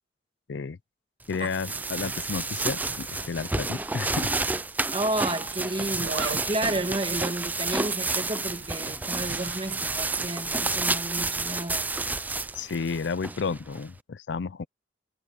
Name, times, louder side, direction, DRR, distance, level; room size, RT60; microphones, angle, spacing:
voice 1, 1.3-4.4 12.5-14.6, left 5 dB, 70° left, 0.5 m, -32 dB
sound 1, 1.3-13.8, right 3 dB, 10° right, 0.4 m, -30 dB
Zipper (clothing), 1.6-4.2 4.4-4.5 5.4-10.4, right 4 dB, 80° right, 1.3 m, -42 dB
voice 2, 4.9-11.9, right 2 dB, 30° right, 2.0 m, -31 dB
head